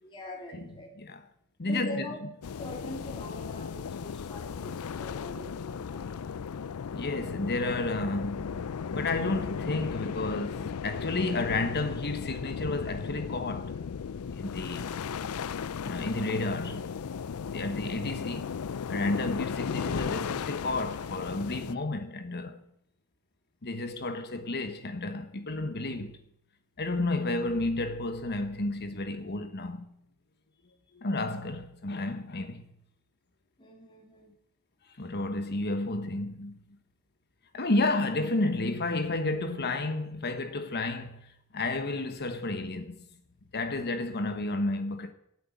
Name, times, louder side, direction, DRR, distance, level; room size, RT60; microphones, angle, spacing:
voice 1, 0.0-0.9 1.6-2.2 2.6-6.3 17.6-17.9 33.6-34.3, left 1 dB, 20° left, 2.9 m, -43 dB
voice 2, 1.6-2.1 6.9-13.8 14.3-15.0 15.8-16.9 17.5-18.5 18.9-22.6 23.6-26.2 26.8-29.9 30.9-32.6 34.9-36.6 37.5-43.0 43.5-45.1, left 2 dB, 50° left, 1.2 m, -31 dB
sound 1, 2.4-21.7, left 6 dB, 70° left, 0.4 m, -36 dB
14.5 x 9.1 x 8.5 m
head